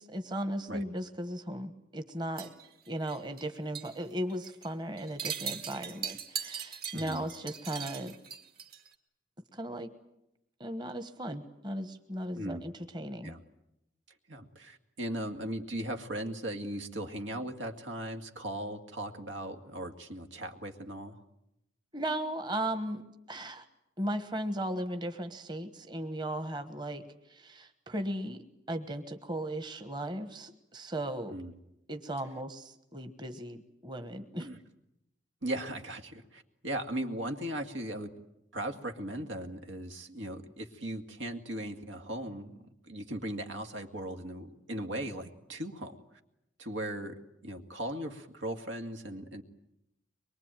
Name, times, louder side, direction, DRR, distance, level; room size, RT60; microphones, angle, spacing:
voice 1, 0.0-2.5 2.9-8.2 9.5-9.9 10.6-13.3 21.9-23.6 24.0-27.0 27.3-31.4 31.9-34.5, right 1 dB, 25° right, 8 dB, 1.3 m, -37 dB
sound 1, 2.4-3.5 3.7-4.0 4.3-4.7 5.0-8.9, right 7 dB, 50° right, 2.2 m, -40 dB
voice 2, 14.3-21.2 31.3-31.5 34.4-34.6 35.4-38.1 38.5-46.0 46.6-49.4, right 1 dB, 85° right, 5 dB, 2.2 m, -38 dB
24.0 x 23.0 x 9.1 m, 0.84 s
head